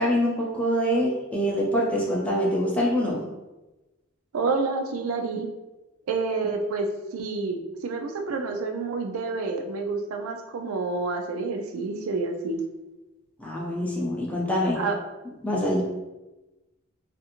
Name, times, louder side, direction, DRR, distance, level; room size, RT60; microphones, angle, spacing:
voice 1, 0.0-3.3 13.4-14.8 15.4-15.8, equal, 5° left, -4 dB, 0.5 m, -25 dB
voice 2, 4.3-5.5 6.1-12.6 14.7-15.0, right 3 dB, 85° right, 4 dB, 0.4 m, -28 dB
2.5 x 2.5 x 2.8 m, 1.1 s
head